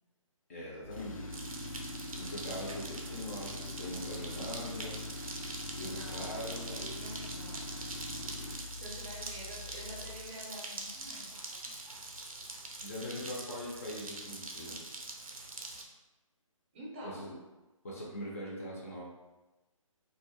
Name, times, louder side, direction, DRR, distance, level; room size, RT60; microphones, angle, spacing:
voice 1, 0.5-1.3 2.1-5.0 5.8-6.9 12.8-14.8 17.0-17.3 17.8-19.1, left 1 dB, 25° left, -5 dB, 0.4 m, -42 dB
Tools, 0.8-10.3, left 2 dB, 80° left, 0.5 m, -43 dB
sound 1, 1.3-15.8, right 2 dB, 85° right, 0.5 m, -44 dB
voice 2, 5.7-7.7 8.1-8.3 8.8-11.8 16.7-17.2, equal, 25° right, -4 dB, 0.6 m, -48 dB
2.2 x 2.1 x 2.8 m, 1.1 s
figure-of-eight pair, 145°, 17 cm